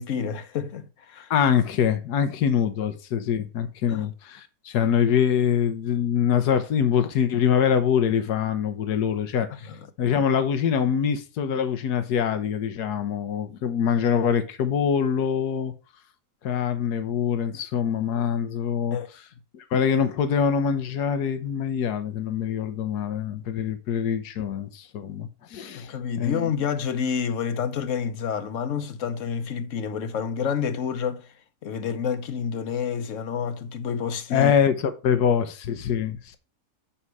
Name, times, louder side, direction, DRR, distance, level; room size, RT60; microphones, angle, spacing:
voice 1, 0.0-1.3 3.9-4.0 9.7-9.8 18.9-19.1 25.7-31.3 31.6-34.5, left 7 dB, 55° left, 1.2 m, -29 dB
voice 2, 1.3-9.7 10.0-15.7 16.4-19.2 19.5-26.5 34.3-36.4, left 8 dB, 80° left, 1.5 m, -24 dB
8.7 x 5.6 x 4.7 m
omnidirectional pair, 1.7 m